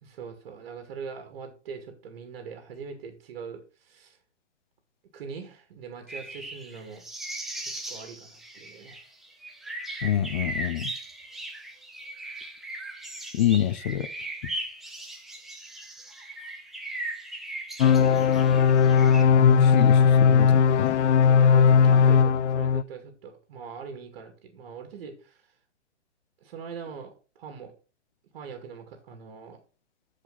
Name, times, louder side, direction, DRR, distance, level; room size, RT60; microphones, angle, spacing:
voice 1, 0.0-4.2 5.1-7.0 7.6-9.0 21.2-25.5 26.4-27.7 28.3-29.6, right 6 dB, 45° right, 2.3 m, -42 dB
sound 1, 6.1-19.2, right 2 dB, ahead, 0.4 m, -38 dB
voice 2, 10.0-10.9 13.3-14.1 19.3-20.9, left 11 dB, 40° left, 0.6 m, -26 dB
sound 2, 17.8-22.8, left 6 dB, 75° left, 0.5 m, -18 dB
13.5 x 5.1 x 4.0 m
hypercardioid pair, 140°, 35 cm